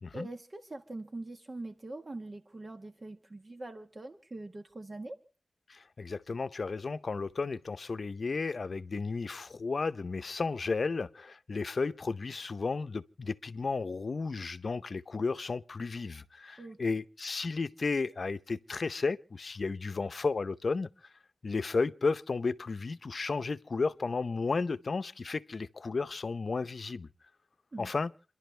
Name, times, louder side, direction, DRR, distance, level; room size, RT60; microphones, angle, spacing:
voice 1, 0.1-5.2 16.6-16.8 27.7-27.9, right 2 dB, 40° right, 1.3 m, -43 dB
voice 2, 5.7-20.9 21.4-27.1 27.8-28.1, left 4 dB, 65° left, 0.7 m, -33 dB
28.5 x 11.5 x 3.3 m
wide cardioid pair, 65°, 0 cm